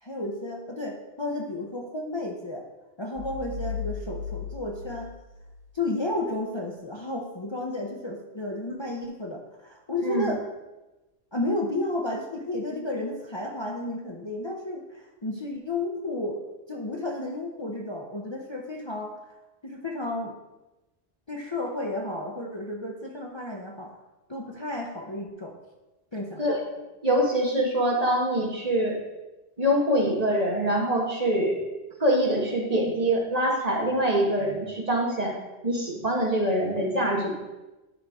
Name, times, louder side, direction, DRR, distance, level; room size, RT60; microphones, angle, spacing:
voice 1, 0.0-2.6 3.0-5.1 5.7-10.4 11.3-16.4 16.7-19.4 19.6-20.3 21.3-24.0 24.3-25.5 26.1-26.4, left 2 dB, 30° left, -1 dB, 0.7 m, -32 dB
sound 1, 3.2-6.1, left 6 dB, 75° right, 2.6 m, -36 dB
voice 2, 27.0-29.0 29.6-31.6 32.0-35.4 35.6-37.3, right 1 dB, 35° right, -1 dB, 1.5 m, -24 dB
11.0 x 5.5 x 3.6 m, 1.1 s
omnidirectional pair, 1.1 m